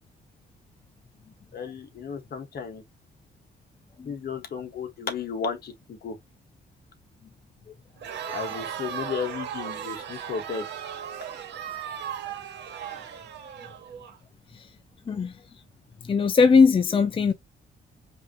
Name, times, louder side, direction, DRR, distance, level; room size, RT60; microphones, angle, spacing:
voice 1, 1.5-2.8 4.0-6.2 8.3-10.7, left 6 dB, 55° left, 1.6 m, -34 dB
Crowd, 8.0-14.2, right 9 dB, 75° right, 1.8 m, -36 dB
voice 2, 16.0-17.3, left 5 dB, 30° left, 0.6 m, -20 dB
5.3 x 2.9 x 2.9 m
cardioid pair, 105°, 18 cm